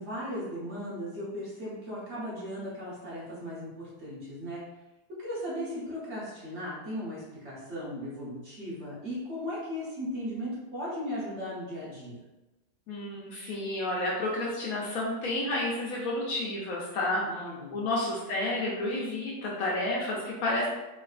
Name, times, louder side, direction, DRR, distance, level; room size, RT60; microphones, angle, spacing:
voice 1, 0.0-4.6 5.2-12.2 17.2-17.7, equal, 50° right, -8 dB, 1.1 m, -37 dB
voice 2, 12.9-17.4 17.7-20.7, left 1 dB, 65° left, -4 dB, 1.0 m, -30 dB
3.3 x 2.7 x 2.3 m, 1.0 s
omnidirectional pair, 1.8 m